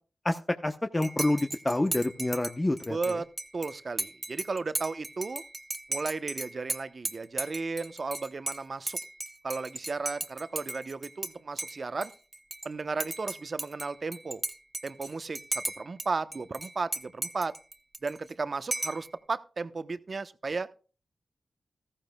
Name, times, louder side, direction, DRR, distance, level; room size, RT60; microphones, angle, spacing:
voice 1, 0.2-3.0, left 1 dB, 25° left, 0.8 m, -28 dB
Dishes pots and pans / Cutlery silverware / Chink clink, 1.0-11.3 11.6-12.7 13.0-16.1 16.3-18.3 18.7-19.1, right 2 dB, 30° right, 0.9 m, -36 dB
voice 2, 2.9-3.3 3.5-5.4 5.9-9.0 9.4-12.1 12.6-14.4 14.8-17.5 18.0-20.7, right 4 dB, 55° right, 0.9 m, -34 dB
14.5 x 14.0 x 2.3 m
cardioid pair, 45°, 0 cm